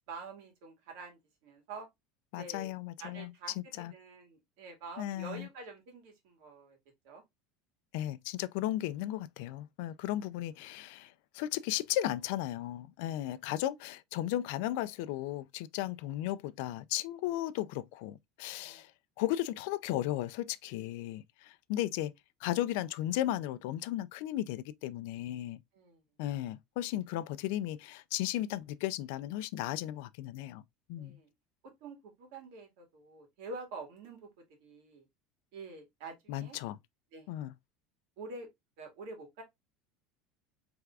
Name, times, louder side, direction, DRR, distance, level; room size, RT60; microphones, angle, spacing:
voice 1, 0.1-1.9 2.3-2.7 3.0-6.8 7.0-7.2 13.1-13.4 15.9-16.2 18.6-18.9 25.7-26.0 31.0-31.3 31.8-35.1 35.5-36.6 37.1-37.3 38.2-38.5 38.8-39.4, right 3 dB, 70° right, 1.9 m, -47 dB
voice 2, 2.3-3.3 3.8-3.9 5.0-5.5 7.9-18.9 19.2-22.1 22.4-25.6 26.2-30.6 30.9-31.2 36.3-36.8 37.3-37.5, left 14 dB, 70° left, 0.4 m, -35 dB
4.6 x 3.4 x 2.4 m
cardioid pair, 155°, 0 cm